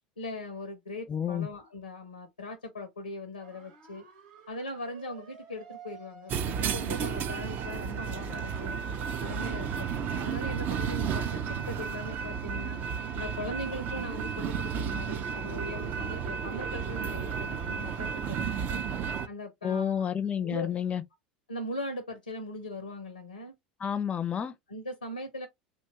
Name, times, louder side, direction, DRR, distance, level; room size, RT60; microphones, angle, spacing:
voice 1, 0.2-4.0 4.5-8.8 9.2-12.8 13.1-18.8 19.3-20.1 20.3-20.7 21.5-23.5 24.7-25.5, left 1 dB, 90° left, 0.5 m, -40 dB
voice 2, 1.1-1.5 19.6-21.0 23.8-24.5, left 8 dB, 25° left, 0.4 m, -30 dB
sound 1, 3.4-10.6, right 5 dB, 65° right, 0.9 m, -51 dB
sound 2, 6.3-19.3, right 7 dB, 40° right, 0.4 m, -33 dB
2.7 x 2.2 x 2.7 m
figure-of-eight pair, 75°, 5 cm